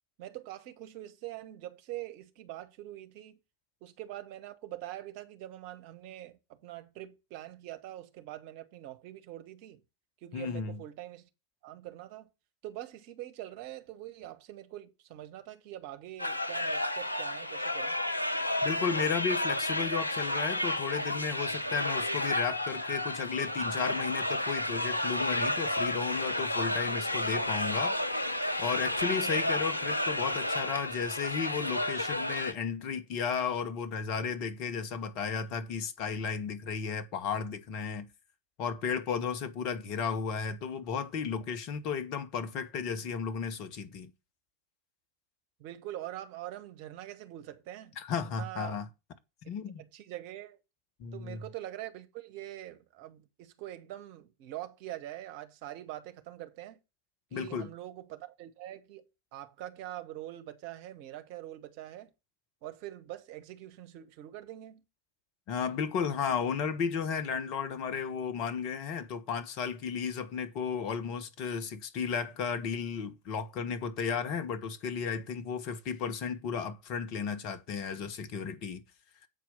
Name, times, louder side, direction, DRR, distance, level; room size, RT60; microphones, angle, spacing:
voice 1, 0.2-3.4 3.8-9.8 10.2-11.3 11.6-12.3 12.6-18.0 45.6-48.0 48.3-48.8 49.4-50.6 51.1-56.8 57.3-62.1 62.6-64.8, right 14 dB, 45° right, 1.2 m, -44 dB
voice 2, 10.3-10.8 18.6-28.3 28.6-38.1 38.6-44.1 48.0-48.9 49.4-49.8 51.0-51.4 57.3-57.7 65.5-78.8, left 6 dB, 40° left, 1.4 m, -34 dB
sound 1, 16.2-32.5, left 1 dB, 85° left, 0.7 m, -31 dB
8.2 x 4.6 x 7.1 m
figure-of-eight pair, 90°, 0 cm